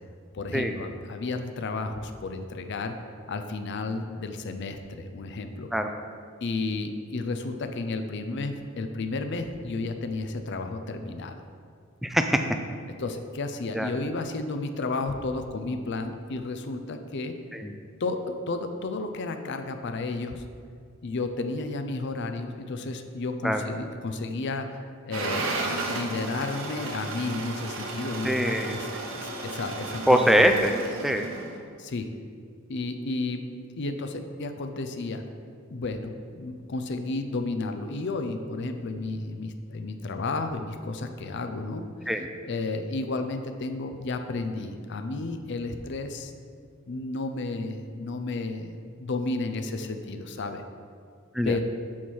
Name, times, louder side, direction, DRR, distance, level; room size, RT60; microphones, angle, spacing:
voice 1, 0.3-3.0 3.3-5.7 6.4-11.4 13.0-17.3 18.0-20.4 21.0-24.8 25.1-28.9 29.2-30.2 31.8-32.1 32.7-33.5 33.8-35.2 35.7-41.9 42.4-46.3 46.9-50.6 51.4-51.6, left 3 dB, 55° left, 7 dB, 0.5 m, -32 dB
voice 2, 12.0-12.5 13.7-13.9 17.5-17.7 23.4-23.6 28.2-28.8 30.1-30.7 31.0-31.3 42.1-42.3 51.3-51.6, equal, ahead, 5 dB, 0.3 m, -23 dB
sound 1, 25.1-31.6, right 2 dB, 65° right, 0.8 m, -34 dB
7.2 x 4.6 x 4.3 m, 2.2 s
head